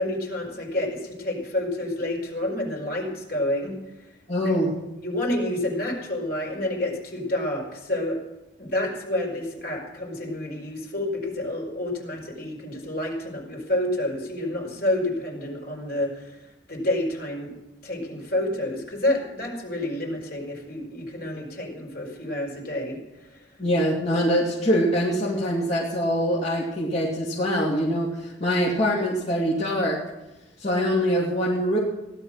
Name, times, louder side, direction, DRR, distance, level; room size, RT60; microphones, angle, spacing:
voice 1, 0.0-3.8 4.4-4.5 5.0-8.2 8.6-16.4 16.7-17.5 17.8-23.0 23.3-23.4, left 1 dB, 55° left, 0 dB, 4.9 m, -29 dB
voice 2, 4.3-4.7 23.6-30.0 30.6-31.8, equal, 35° left, -6 dB, 2.8 m, -24 dB
17.0 x 12.0 x 6.5 m, 0.97 s
head